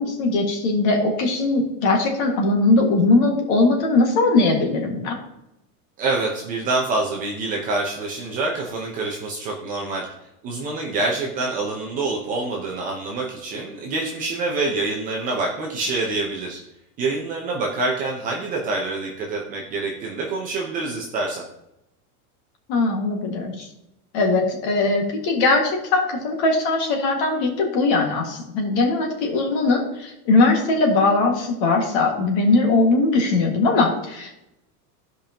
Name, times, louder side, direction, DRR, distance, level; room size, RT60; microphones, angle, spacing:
voice 1, 0.0-5.1 22.7-23.7 24.1-34.3, left 3 dB, 45° left, 1 dB, 1.9 m, -20 dB
voice 2, 6.0-10.1 10.4-16.6 17.0-21.4, right 3 dB, 20° right, -1 dB, 0.6 m, -26 dB
15.5 x 5.2 x 2.9 m, 0.86 s
supercardioid pair, 175°, 46 cm